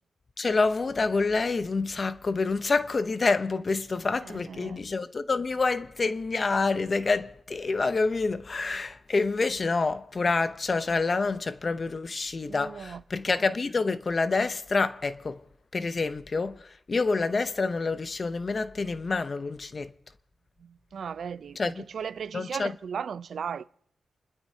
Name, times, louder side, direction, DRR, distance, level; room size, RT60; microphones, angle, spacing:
voice 1, 0.4-15.4 15.7-19.9 21.6-21.8 22.3-22.7, left 3 dB, 40° left, 0.7 m, -27 dB
voice 2, 4.2-4.8 12.5-13.0 20.6-23.7, right 7 dB, 70° right, 0.4 m, -37 dB
28.0 x 12.0 x 2.8 m
cardioid pair, 90°, 0 cm